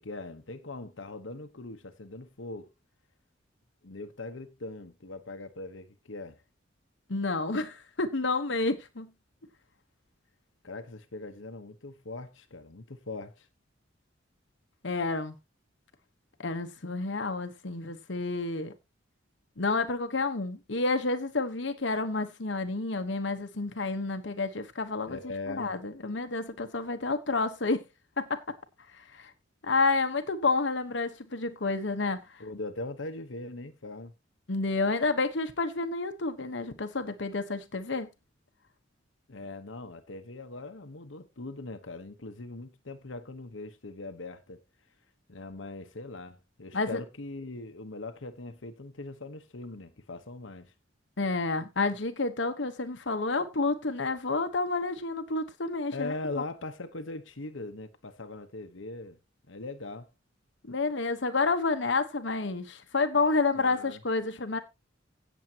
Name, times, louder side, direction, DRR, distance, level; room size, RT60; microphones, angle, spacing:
voice 1, 0.0-2.7 3.8-6.4 10.6-13.5 25.0-25.7 32.4-34.1 39.3-44.6 45.3-50.7 55.9-59.2 59.5-60.1 63.5-64.0, left 2 dB, 90° left, 1.2 m, -41 dB
voice 2, 7.1-9.1 14.8-15.3 16.4-18.7 19.6-25.2 25.5-27.8 28.2-28.4 29.1-29.3 29.6-32.2 34.5-38.1 46.7-47.0 51.2-56.1 60.7-64.6, left 3 dB, 70° left, 1.2 m, -29 dB
16.5 x 7.4 x 2.9 m
head